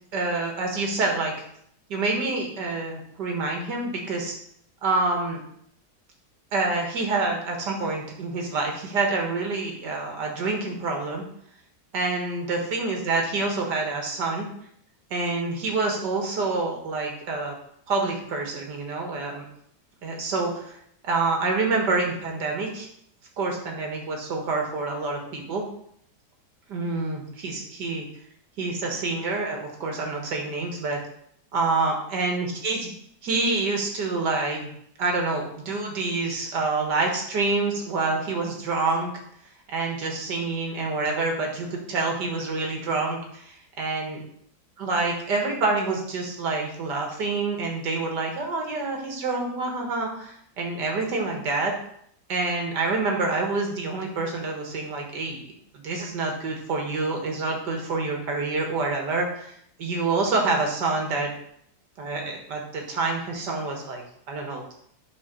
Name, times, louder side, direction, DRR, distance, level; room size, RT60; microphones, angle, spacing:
voice 1, 0.1-1.5 1.9-4.3 4.8-5.4 6.5-11.2 11.9-14.5 15.1-17.6 17.9-19.5 20.0-20.8 21.0-22.9 23.4-25.6 26.7-28.1 28.6-31.0 31.5-32.9 33.2-34.7 35.0-39.1 39.7-44.2 44.8-51.8 52.3-55.4 55.7-61.3 62.0-64.6, right 3 dB, 85° right, 1 dB, 2.2 m, -27 dB
9.7 x 3.7 x 5.5 m, 0.69 s
omnidirectional pair, 1.8 m